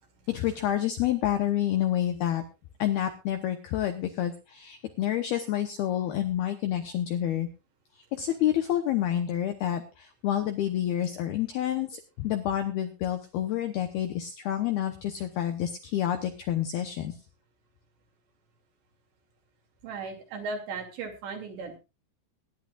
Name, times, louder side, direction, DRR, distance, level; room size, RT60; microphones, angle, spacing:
voice 1, 0.3-2.4 2.8-7.5 8.1-17.1, left 11 dB, 80° left, 6 dB, 2.2 m, -28 dB
voice 2, 19.8-21.8, right 4 dB, 65° right, 2 dB, 4.6 m, -37 dB
23.5 x 10.5 x 2.5 m, 0.28 s
omnidirectional pair, 5.8 m